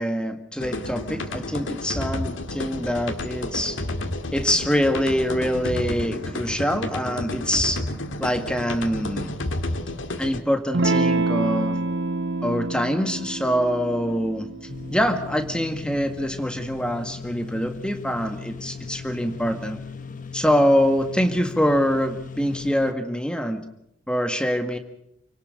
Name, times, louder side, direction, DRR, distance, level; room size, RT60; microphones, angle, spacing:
voice 1, 0.0-3.8 4.3-7.8 8.2-9.3 10.2-11.8 12.4-14.5 14.9-19.8 20.3-23.6 24.1-24.8, equal, 5° left, 7 dB, 1.9 m, -24 dB
sound 1, 0.6-10.4, left 1 dB, 80° left, 1.9 m, -31 dB
Electric guitar / Strum, 10.7-15.8, right 2 dB, 65° right, 1.2 m, -27 dB
sound 2, 14.7-22.9, left 5 dB, 40° left, 1.1 m, -38 dB
29.5 x 18.0 x 6.5 m, 0.76 s
head